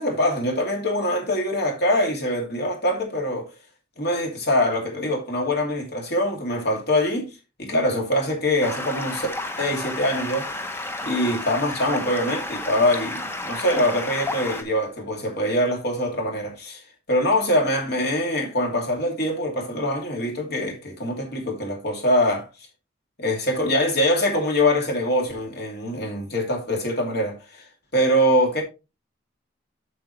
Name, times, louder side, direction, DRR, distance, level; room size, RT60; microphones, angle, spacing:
voice 1, 0.0-3.5 4.0-9.3 9.6-16.8 17.1-22.5 23.2-28.6, left 1 dB, 55° left, 2.7 m, -24 dB
Stream, 8.6-14.6, left 2 dB, 15° left, 0.8 m, -31 dB
7.6 x 6.9 x 3.2 m
head